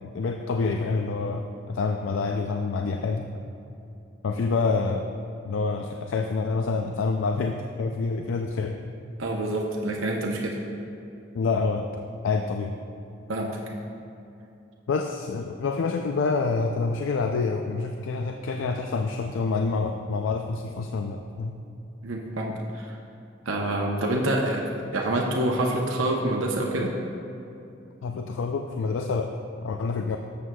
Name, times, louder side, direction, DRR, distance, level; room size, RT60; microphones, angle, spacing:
voice 1, 0.0-3.3 4.2-5.1 5.4-8.8 11.3-12.8 14.9-21.6 28.0-30.2, left 4 dB, 75° left, 4 dB, 0.4 m, -27 dB
voice 2, 9.2-10.6 13.3-13.7 22.0-23.0 23.5-24.7 24.9-26.9, right 1 dB, 90° right, -1 dB, 0.7 m, -27 dB
12.5 x 7.6 x 2.3 m, 2.8 s
head